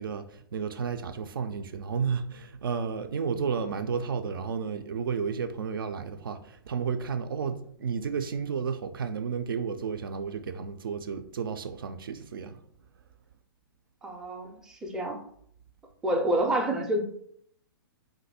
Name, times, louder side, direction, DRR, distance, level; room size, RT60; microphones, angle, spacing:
voice 1, 0.0-12.6, right 6 dB, 65° right, 0.4 m, -32 dB
voice 2, 14.0-15.2 16.0-17.0, right 1 dB, 5° right, 0.4 m, -28 dB
2.6 x 2.5 x 4.1 m
figure-of-eight pair, 120°, 12 cm